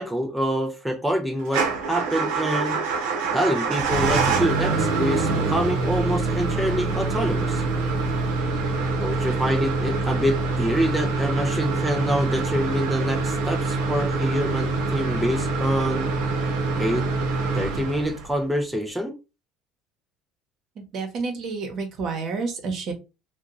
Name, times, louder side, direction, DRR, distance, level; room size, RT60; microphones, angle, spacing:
voice 1, 0.0-2.8 3.3-7.6 9.0-16.1 16.8-17.1 17.5-19.2, equal, 5° right, 0.5 m, -26 dB
Motor vehicle (road) / Engine starting / Idling, 1.5-18.4, right 3 dB, 80° right, 0.9 m, -25 dB
voice 2, 20.8-22.9, right 4 dB, 55° right, 1.1 m, -29 dB
2.8 x 2.4 x 3.7 m
supercardioid pair, 110°, 0 cm